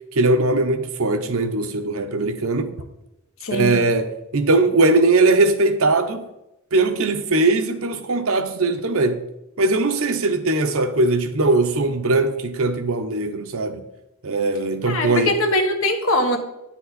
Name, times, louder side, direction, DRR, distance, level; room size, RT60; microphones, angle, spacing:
voice 1, 0.1-2.7 3.5-6.2 6.7-9.2 9.6-13.8 14.2-15.3, right 2 dB, 70° right, 0.9 m, -20 dB
voice 2, 3.4-3.7 14.9-16.4, left 1 dB, 65° left, 1.4 m, -21 dB
10.0 x 7.3 x 4.1 m
head